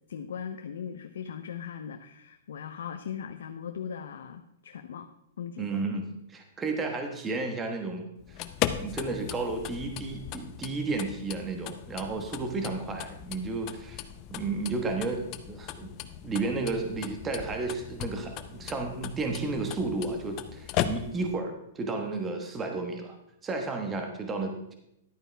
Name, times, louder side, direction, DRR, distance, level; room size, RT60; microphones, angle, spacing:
voice 1, 0.1-5.1 5.4-5.7, left 8 dB, 85° left, 6 dB, 0.7 m, -39 dB
voice 2, 5.6-8.4 8.8-14.0 14.3-16.0 16.2-23.1 23.4-24.7, right 3 dB, 15° right, 4 dB, 1.2 m, -32 dB
sound 1, 8.2-21.4, left 11 dB, 30° left, 0.6 m, -37 dB
11.5 x 9.0 x 3.4 m, 0.79 s
hypercardioid pair, 160°, 0 cm